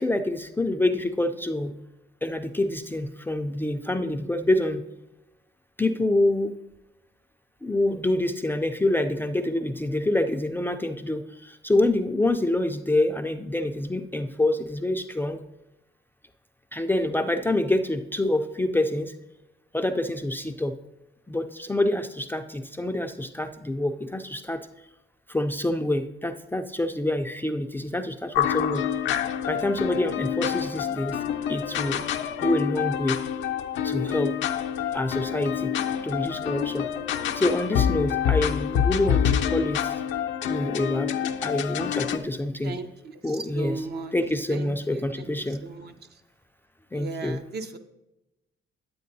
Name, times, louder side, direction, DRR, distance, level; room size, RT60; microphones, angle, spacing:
voice 1, 0.0-1.7 2.2-4.8 5.8-6.5 7.6-15.4 16.7-19.1 19.7-20.7 21.3-24.7 25.3-28.8 29.5-31.2 31.5-32.1 32.4-33.2 33.8-34.3 34.9-35.7 36.0-36.9 37.3-39.9 40.5-41.1 41.4-42.7 43.2-43.9 44.1-45.6 46.9-47.4, left 1 dB, 10° left, 5 dB, 0.4 m, -26 dB
sound 1, 28.3-42.2, left 9 dB, 70° left, 0.5 m, -27 dB
voice 2, 43.3-44.1 44.5-45.9 46.9-47.8, right 3 dB, 55° right, 7 dB, 0.7 m, -37 dB
9.1 x 8.5 x 2.6 m, 0.94 s
cardioid pair, 90°, 20 cm